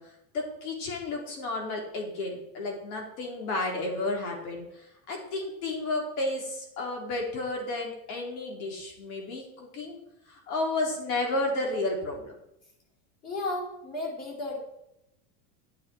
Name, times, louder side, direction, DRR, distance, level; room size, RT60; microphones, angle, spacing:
voice 1, 0.0-10.0 10.3-12.3, left 2 dB, 85° left, 0 dB, 4.2 m, -32 dB
voice 2, 13.2-14.6, left 2 dB, 35° left, -2 dB, 4.3 m, -33 dB
10.5 x 8.9 x 4.6 m, 0.83 s
supercardioid pair, 155°, 43 cm